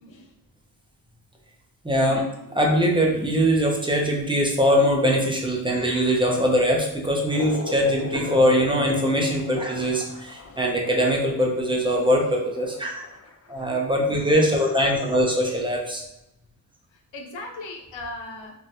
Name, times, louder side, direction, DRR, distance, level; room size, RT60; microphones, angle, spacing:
voice 1, 0.0-0.3 7.6-7.8 10.0-10.7 11.8-12.3 15.3-15.4 16.9-18.5, left 2 dB, 80° left, 2 dB, 0.7 m, -40 dB
voice 2, 1.8-2.3 2.5-13.0 13.5-16.0, equal, 10° right, -1 dB, 0.7 m, -22 dB
sound 1, 7.3-15.3, left 3 dB, 35° left, 0.4 m, -38 dB
3.0 x 2.3 x 2.7 m, 0.88 s
cardioid pair, 65°, 44 cm